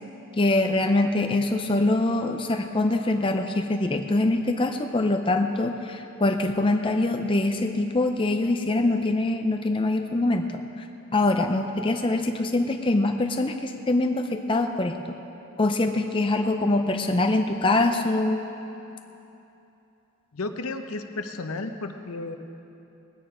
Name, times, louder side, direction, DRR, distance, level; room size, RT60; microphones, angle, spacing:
voice 1, 0.4-10.5 11.1-15.0 15.6-18.4, left 2 dB, 25° left, 5 dB, 0.5 m, -24 dB
voice 2, 20.3-22.4, left 3 dB, 75° left, 7 dB, 0.8 m, -33 dB
19.5 x 9.3 x 5.0 m, 2.9 s
head